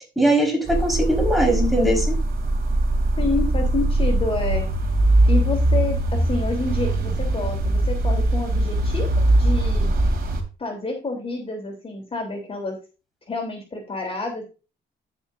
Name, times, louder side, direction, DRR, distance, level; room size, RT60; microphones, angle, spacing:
voice 1, 0.2-2.2, right 1 dB, ahead, 0 dB, 4.8 m, -20 dB
sound 1, 0.7-10.4, right 1 dB, 50° right, 3.2 m, -21 dB
voice 2, 3.2-4.7 5.3-9.9 10.6-12.8 13.3-14.4, left 3 dB, 30° left, 0 dB, 3.5 m, -28 dB
10.5 x 9.9 x 2.7 m, 0.31 s
cardioid pair, 90°, 20 cm